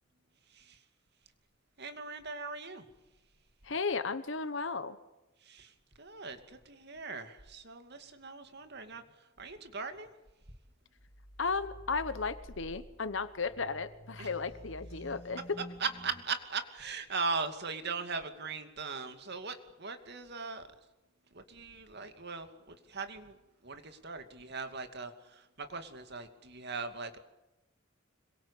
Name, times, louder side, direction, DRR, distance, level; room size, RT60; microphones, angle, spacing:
voice 1, 1.8-2.8 5.4-5.7 6.0-9.0 9.4-10.1 14.2-14.3 15.8-20.7 21.3-23.4 23.6-27.2, right 4 dB, 55° right, 8 dB, 2.6 m, -39 dB
voice 2, 3.6-5.0 11.4-15.6, left 4 dB, 65° left, 13 dB, 1.1 m, -34 dB
sound 1, 11.0-16.2, equal, 25° left, 2.4 m, -50 dB
26.0 x 23.0 x 8.4 m, 0.98 s
head